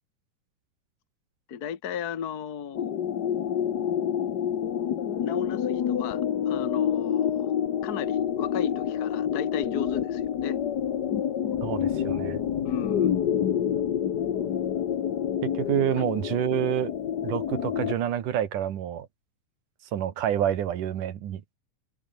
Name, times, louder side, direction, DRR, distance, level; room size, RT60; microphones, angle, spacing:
voice 1, 1.5-2.9 5.2-6.2 6.5-7.5 7.8-10.6 12.6-13.1, left 8 dB, 40° left, 1.5 m, -35 dB
sound 1, 2.7-17.9, left 9 dB, 75° left, 0.9 m, -28 dB
voice 2, 11.6-12.4 15.4-16.9 17.2-19.1 19.9-21.4, right 10 dB, 75° right, 3.3 m, -28 dB
omnidirectional pair, 3.7 m